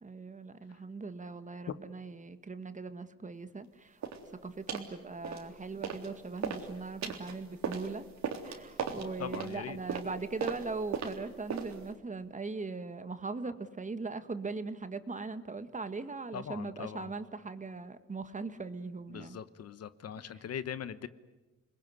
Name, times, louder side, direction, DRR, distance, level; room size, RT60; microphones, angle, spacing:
voice 1, 0.0-4.0 4.4-8.0 8.4-19.4 20.3-20.4, right 3 dB, 25° right, 10 dB, 1.7 m, -40 dB
sound 1, 4.0-4.3 4.7-4.9 5.2-6.1 6.4-11.9, right 6 dB, 65° right, 3.6 m, -38 dB
voice 2, 9.2-9.8 16.3-17.1 19.1-21.1, left 8 dB, 55° left, 14 dB, 1.2 m, -41 dB
28.5 x 21.0 x 9.8 m, 1.2 s
cardioid pair, 90°, 30 cm